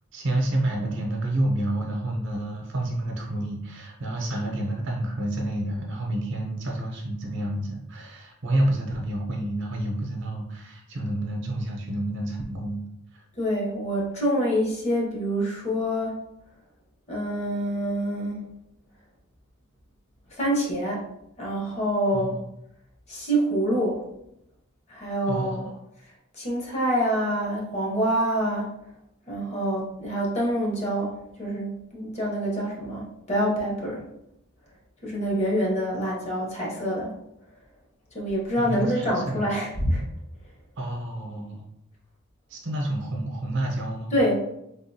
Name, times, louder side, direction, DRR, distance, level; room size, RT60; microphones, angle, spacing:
voice 1, 0.1-12.8 22.1-22.4 25.3-25.8 38.6-39.5 40.8-41.6 42.5-44.2, right 1 dB, 60° right, 0 dB, 0.7 m, -29 dB
voice 2, 13.4-16.2 17.1-18.5 20.4-21.0 21.4-22.4 23.1-24.0 24.9-25.6 26.3-28.7 29.3-34.0 35.0-37.1 38.1-40.0 44.1-44.4, equal, 30° left, -3 dB, 0.9 m, -26 dB
3.4 x 2.5 x 2.7 m, 0.83 s
head